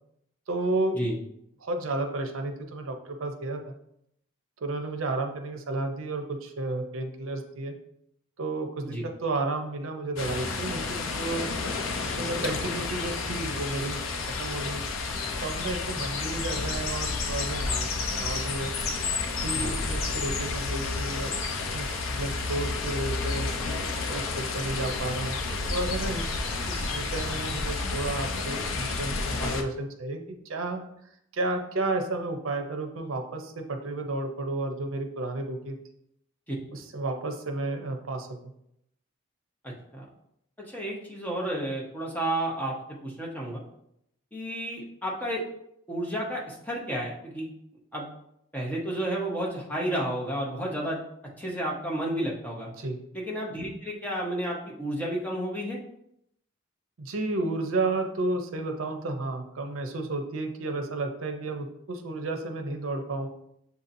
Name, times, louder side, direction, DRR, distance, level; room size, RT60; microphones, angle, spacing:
voice 1, 0.5-1.0 1.6-3.7 4.6-7.7 8.4-11.5 12.1-14.8 15.4-17.9 18.1-18.7 19.4-21.3 21.7-23.5 24.1-25.4 25.7-30.8 31.3-35.8 36.7-38.3 52.8-53.0 57.0-63.3, right 2 dB, 80° right, 5 dB, 0.6 m, -32 dB
sound 1, 10.2-29.6, left 3 dB, 80° left, 0.5 m, -31 dB
voice 2, 40.7-42.7 43.0-43.6 44.3-45.4 45.9-47.5 47.9-48.1 48.5-51.0 51.4-52.7 53.1-55.8, right 1 dB, 10° left, -4 dB, 0.7 m, -31 dB
6.9 x 2.7 x 2.6 m, 0.76 s
head